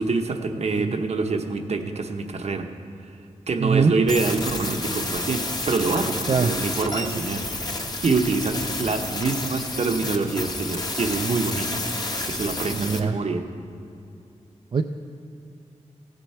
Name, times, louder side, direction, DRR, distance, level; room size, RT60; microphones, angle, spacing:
voice 1, 0.0-2.7 3.5-11.8 12.2-13.4, right 3 dB, 60° right, 5 dB, 0.9 m, -26 dB
voice 2, 3.6-3.9 6.3-6.5 12.7-13.2 14.7-14.8, right 5 dB, 45° right, 5 dB, 0.4 m, -22 dB
sound 1, 4.1-13.0, left 2 dB, 30° left, 1.1 m, -30 dB
16.0 x 9.1 x 4.4 m, 2.6 s
wide cardioid pair, 95°, 12 cm